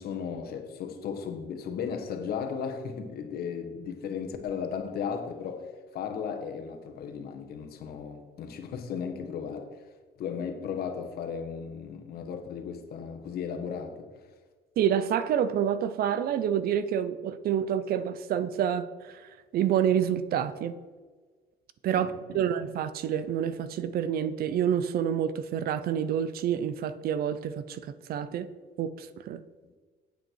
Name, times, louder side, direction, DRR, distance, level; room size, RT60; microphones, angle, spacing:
voice 1, 0.0-9.8 10.2-14.1 21.9-22.4, left 6 dB, 65° left, 1.5 m, -35 dB
voice 2, 14.8-20.7 21.8-28.5 28.8-29.4, right 9 dB, 65° right, 0.7 m, -28 dB
9.5 x 8.2 x 4.6 m
cardioid pair, 110°, 17 cm